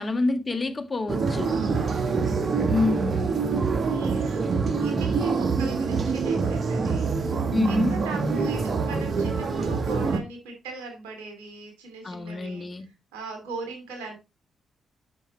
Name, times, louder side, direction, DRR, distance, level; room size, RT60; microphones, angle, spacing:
voice 1, 0.0-1.6 2.7-3.3 7.5-8.0 12.0-12.9, left 3 dB, 40° left, 1.5 m, -27 dB
sound 1, 1.1-10.2, right 4 dB, 60° right, 1.2 m, -25 dB
voice 2, 1.5-2.3 3.9-4.4 4.8-12.7 13.1-14.2, right 4 dB, 90° right, 2.7 m, -40 dB
8.9 x 5.9 x 3.1 m
hypercardioid pair, 45°, 0 cm